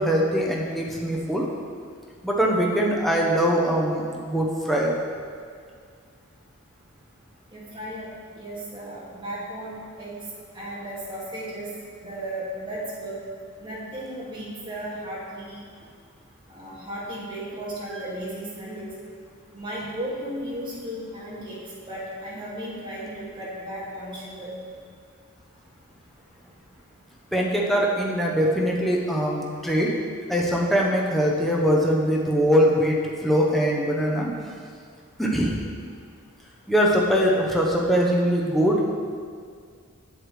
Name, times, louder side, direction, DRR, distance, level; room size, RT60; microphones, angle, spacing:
voice 1, 0.0-1.5 2.2-4.9 27.3-29.9 30.3-34.3 35.2-35.6 36.7-38.9, equal, ahead, -3 dB, 0.7 m, -22 dB
voice 2, 7.5-8.1 8.4-10.1 10.5-11.7 12.0-13.2 13.6-15.7 16.5-18.9 19.5-21.6 21.9-24.5, right 1 dB, 25° right, -8 dB, 2.0 m, -35 dB
7.9 x 7.8 x 3.2 m, 2.1 s
head